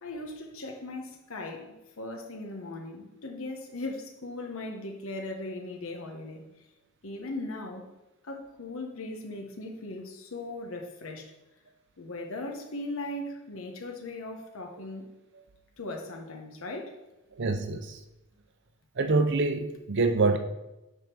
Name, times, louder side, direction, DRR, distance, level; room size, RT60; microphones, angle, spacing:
voice 1, 0.0-6.4 7.0-7.8 8.2-11.3 12.0-15.0 15.8-16.9, left 2 dB, 65° left, 1.0 m, -38 dB
voice 2, 17.4-18.0 19.0-20.4, right 3 dB, 55° right, 0.6 m, -25 dB
8.9 x 3.7 x 5.9 m
head